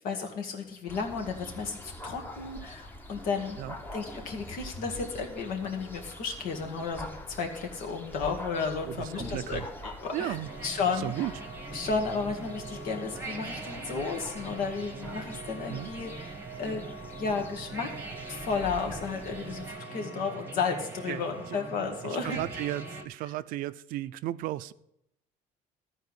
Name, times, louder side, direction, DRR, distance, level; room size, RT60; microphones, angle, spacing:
voice 1, 0.0-3.6 3.9-10.4 10.6-11.3 11.7-17.9 18.3-22.4, left 5 dB, 70° left, 3 dB, 2.0 m, -33 dB
sound 1, 0.9-19.7, left 1 dB, 15° left, 1.0 m, -45 dB
voice 2, 8.9-9.7 10.1-10.5 10.9-11.3 15.7-15.9 21.1-21.3 22.0-24.7, right 14 dB, 70° right, 16 dB, 0.5 m, -34 dB
sound 2, 10.4-23.1, right 3 dB, 15° right, 1.1 m, -41 dB
13.5 x 4.6 x 8.0 m, 0.79 s
cardioid pair, 140°, 15 cm